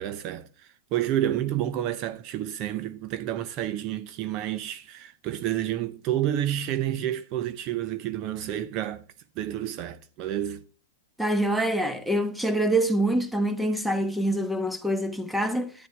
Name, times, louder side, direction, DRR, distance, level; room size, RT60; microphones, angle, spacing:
voice 1, 0.0-9.0 9.4-10.6, right 12 dB, 45° right, 0.7 m, -30 dB
voice 2, 11.2-15.7, right 1 dB, ahead, 1.3 m, -25 dB
11.0 x 9.7 x 3.3 m
hypercardioid pair, 115°, 0 cm